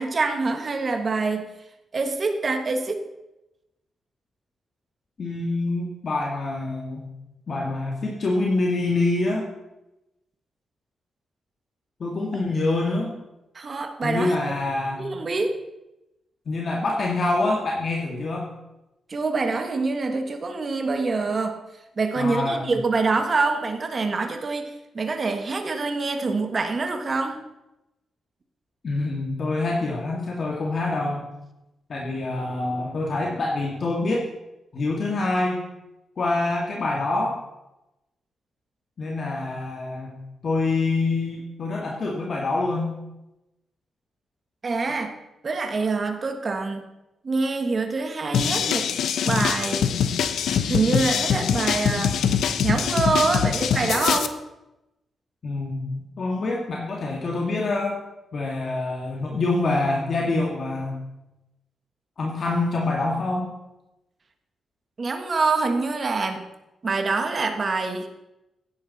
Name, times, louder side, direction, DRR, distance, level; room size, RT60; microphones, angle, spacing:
voice 1, 0.0-1.5 1.9-3.0 13.5-14.6 15.0-15.6 19.1-21.6 22.0-27.4 44.6-45.1 45.4-46.9 47.2-48.9 49.2-49.8 50.7-52.2 52.6-54.4 65.0-66.4 66.8-68.1, right 3 dB, 35° right, 5 dB, 1.5 m, -25 dB
voice 2, 5.2-7.1 7.5-9.5 12.0-13.1 14.0-15.0 16.5-18.5 22.2-22.7 28.8-31.2 31.9-34.2 34.7-35.6 36.2-37.4 39.0-40.2 40.4-42.9 55.4-58.0 58.3-61.0 62.2-63.5, left 2 dB, 45° left, -1 dB, 2.0 m, -26 dB
sound 1, 48.3-54.3, left 8 dB, 85° left, 0.9 m, -23 dB
16.0 x 11.0 x 4.2 m, 0.93 s
wide cardioid pair, 140°, 0 cm